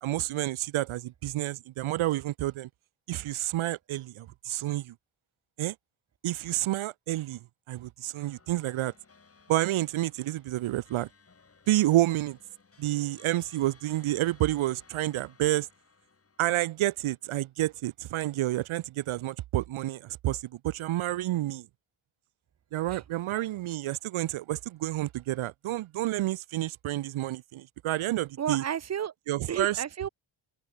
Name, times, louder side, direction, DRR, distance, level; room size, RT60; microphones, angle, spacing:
voice 1, 0.0-2.7 3.1-4.9 5.6-5.7 6.2-7.4 7.7-8.9 9.5-11.1 11.7-12.4 12.8-15.7 16.4-21.7 22.7-28.6 29.3-29.8, right 15 dB, 75° right, 0.7 m, -29 dB
sound 1, 8.1-17.8, left 4 dB, 30° left, 2.8 m, -61 dB
voice 2, 28.4-29.1 29.5-30.1, right 9 dB, 35° right, 0.6 m, -32 dB
cardioid pair, 110°, 49 cm